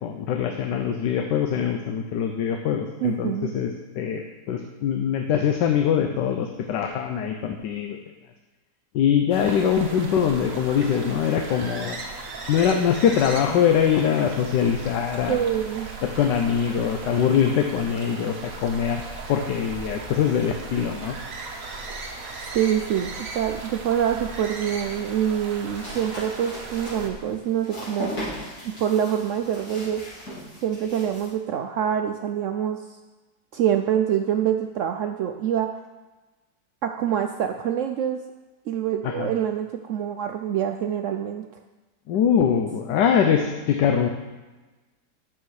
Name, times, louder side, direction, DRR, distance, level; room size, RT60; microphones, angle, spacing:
voice 1, 0.0-8.0 8.9-12.0 12.5-15.4 16.0-19.0 19.3-21.2 39.0-39.3 42.1-44.1, left 8 dB, 85° left, 4 dB, 1.3 m, -23 dB
voice 2, 3.0-3.5 15.3-15.9 22.5-28.1 28.8-30.0 30.6-32.8 33.5-35.7 36.8-38.2 38.7-41.5, right 9 dB, 80° right, 6 dB, 0.6 m, -25 dB
sound 1, 9.3-27.1, right 3 dB, 55° right, 1.4 m, -37 dB
sound 2, 25.5-31.3, equal, 60° left, 4.2 m, -38 dB
9.1 x 7.2 x 4.8 m, 1.2 s
omnidirectional pair, 1.8 m